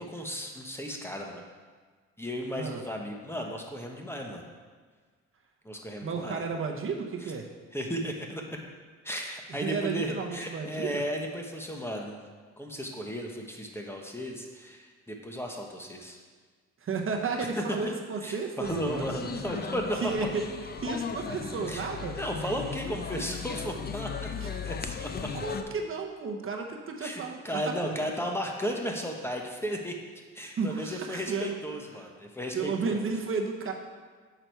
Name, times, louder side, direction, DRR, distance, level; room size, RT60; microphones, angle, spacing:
voice 1, 0.0-1.4 2.2-4.4 5.6-6.4 7.2-7.3 7.7-8.4 9.0-12.2 12.6-16.2 17.6-17.9 18.2-20.1 21.7-21.9 22.2-25.3 27.0-29.9 30.3-33.0, equal, 10° left, 1 dB, 1.0 m, -35 dB
voice 2, 6.0-7.5 9.5-11.0 16.8-19.1 20.0-20.4 20.8-22.2 24.4-24.5 25.3-27.9 30.6-31.5 32.5-33.7, right 5 dB, 45° right, 2 dB, 0.8 m, -33 dB
sound 1, 18.6-25.6, left 6 dB, 30° left, 0.6 m, -37 dB
6.9 x 5.8 x 4.6 m, 1.5 s
cardioid pair, 90°, 30 cm